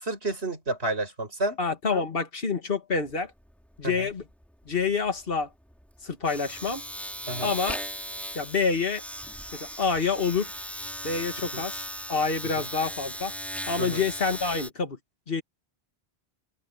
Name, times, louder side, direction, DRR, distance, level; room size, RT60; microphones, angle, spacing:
voice 1, 0.0-1.6 3.8-4.1 7.3-7.5 11.5-11.6 12.6-12.7 13.8-14.0, right 2 dB, 85° right, 6.0 m, -30 dB
voice 2, 1.6-3.3 3.8-4.2 4.7-5.5 6.0-6.8 7.4-7.8 8.3-9.0 9.5-10.5 11.0-11.8 12.1-13.3 13.7-15.0 15.3-15.4, left 5 dB, 65° left, 2.1 m, -27 dB
Domestic sounds home sounds, 2.9-3.1 3.4-14.7, equal, ahead, 3.3 m, -37 dB
open air
omnidirectional pair, 1.1 m